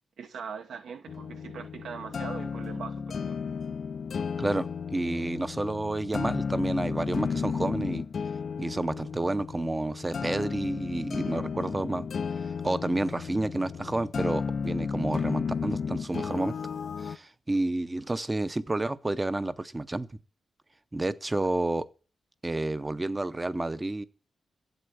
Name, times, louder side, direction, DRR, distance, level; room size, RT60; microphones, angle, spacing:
voice 1, 0.2-3.5, right 6 dB, 90° right, 1.1 m, -41 dB
sound 1, 1.1-17.2, left 6 dB, 55° left, 0.5 m, -33 dB
voice 2, 4.4-8.0 8.6-12.1 12.6-16.5 17.0-20.1 20.9-21.9 22.4-24.1, right 2 dB, 15° right, 0.6 m, -30 dB
7.9 x 7.8 x 8.5 m
wide cardioid pair, 125°, 0 cm